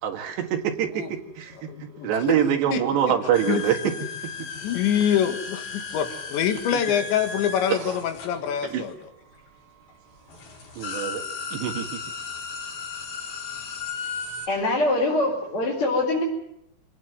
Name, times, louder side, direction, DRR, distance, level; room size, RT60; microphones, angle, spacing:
voice 1, 0.0-3.9 7.7-8.0 8.6-8.8 10.8-11.2 11.5-11.9, right 9 dB, 70° right, 5 dB, 4.1 m, -25 dB
voice 2, 1.6-2.4 2.7-2.8 3.5-3.6 4.6-8.9, left 9 dB, 80° left, 7 dB, 4.1 m, -25 dB
sound 1, 3.3-9.0 9.9-10.0 10.3-14.5, left 5 dB, 60° left, 6.3 m, -35 dB
voice 3, 14.5-16.2, left 2 dB, 30° left, -2 dB, 4.9 m, -23 dB
26.5 x 18.0 x 8.1 m, 0.81 s
omnidirectional pair, 5.1 m